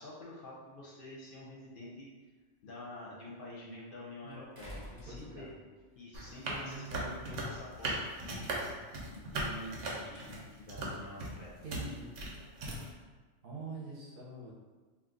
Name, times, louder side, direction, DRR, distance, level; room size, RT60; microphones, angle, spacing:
voice 1, 0.0-2.1 2.6-5.5 6.0-8.6 9.1-11.6, left 1 dB, 55° left, -5 dB, 0.7 m, -48 dB
sound 1, 1.3-1.4 4.5-5.8 7.2-7.3, equal, 25° right, 0.6 m, -48 dB
voice 2, 5.1-5.5 6.6-7.2 11.6-12.1 13.4-14.5, right 3 dB, 55° right, -5 dB, 0.8 m, -45 dB
sound 2, 6.1-12.9, right 2 dB, 90° right, 1.0 m, -38 dB
2.6 x 2.3 x 3.6 m, 1.3 s
omnidirectional pair, 1.2 m